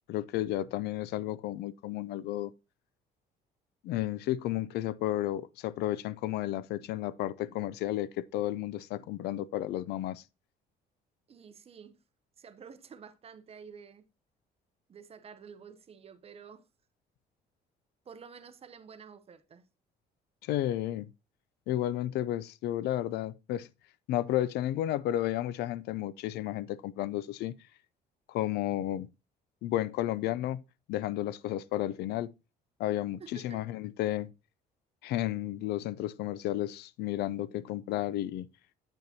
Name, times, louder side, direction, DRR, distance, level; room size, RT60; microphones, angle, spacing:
voice 1, 0.1-2.5 3.8-10.2 20.4-21.1 21.7-23.7 24.1-27.5 28.3-29.1 29.6-30.6 30.9-32.3 32.8-34.3 35.0-38.5, left 13 dB, 75° left, 0.4 m, -32 dB
voice 2, 11.3-12.0 12.4-14.1 14.9-16.6 18.0-19.6 33.2-33.6, right 6 dB, 35° right, 0.8 m, -50 dB
8.2 x 6.7 x 2.8 m
cardioid pair, 110°, 17 cm